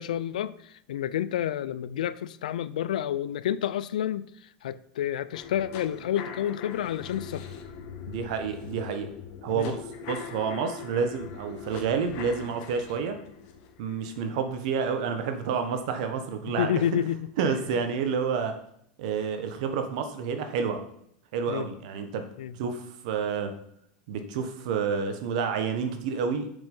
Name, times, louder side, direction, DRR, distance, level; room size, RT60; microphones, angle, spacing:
voice 1, 0.0-7.5 9.5-9.8 16.5-17.3 21.5-21.7 22.4-22.6, left 10 dB, 85° left, 0.4 m, -30 dB
sound 1, 5.3-15.4 15.8-15.9, left 6 dB, 55° left, 1.4 m, -42 dB
voice 2, 8.1-9.1 9.4-9.8 10.1-13.2 13.8-16.7 17.4-18.5 19.0-20.8 21.3-22.2 22.6-23.5 24.1-26.5, right 6 dB, 65° right, 1.2 m, -29 dB
7.2 x 5.3 x 5.4 m
hypercardioid pair, 115°, 4 cm